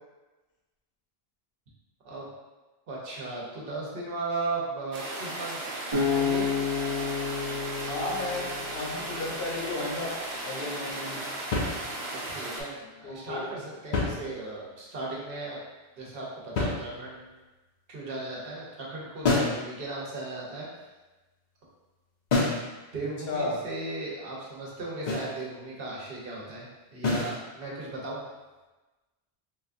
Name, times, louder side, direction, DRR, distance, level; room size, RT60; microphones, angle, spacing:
voice 1, 2.9-5.6 6.1-6.5 12.1-15.6 16.0-17.3 17.9-20.9 22.9-28.2, right 2 dB, 65° right, -5 dB, 1.0 m, -36 dB
sound 1, 4.9-12.6, right 1 dB, 85° right, 0.8 m, -36 dB
Acoustic guitar, 5.9-9.1, left 6 dB, 35° right, 0.8 m, -30 dB
voice 2, 7.9-10.1 10.4-11.2 13.0-13.5 23.3-23.6, left 2 dB, 70° left, -3 dB, 0.9 m, -33 dB
sound 2, 11.5-12.3 13.7-14.8 16.6-17.3 19.2-19.7 22.3-22.7 25.1-25.4 27.0-27.4, left 3 dB, 55° left, 0.6 m, -28 dB
3.6 x 2.3 x 2.5 m, 1.2 s
omnidirectional pair, 1.0 m